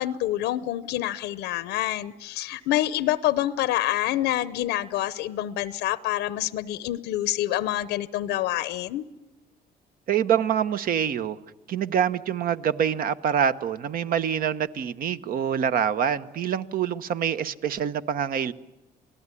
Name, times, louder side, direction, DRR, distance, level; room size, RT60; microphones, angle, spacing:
voice 1, 0.0-9.0, left 14 dB, 90° left, 15 dB, 0.8 m, -27 dB
voice 2, 10.1-11.4 11.7-18.5, right 8 dB, 60° right, 12 dB, 1.1 m, -25 dB
28.0 x 18.5 x 9.9 m, 1.0 s
cardioid pair, 110°, 17 cm